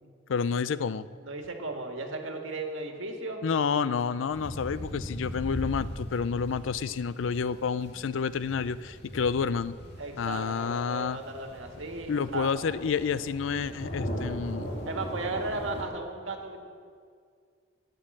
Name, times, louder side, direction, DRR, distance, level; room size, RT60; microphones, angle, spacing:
voice 1, 0.3-1.1 3.4-9.8 10.2-11.2 12.1-14.7, left 6 dB, 75° left, 16 dB, 0.4 m, -29 dB
voice 2, 1.2-3.4 10.0-12.5 14.9-16.6, right 3 dB, 85° right, 3 dB, 1.6 m, -35 dB
sound 1, 4.3-15.8, equal, 55° left, 2.3 m, -39 dB
11.5 x 9.2 x 7.7 m, 2.2 s
head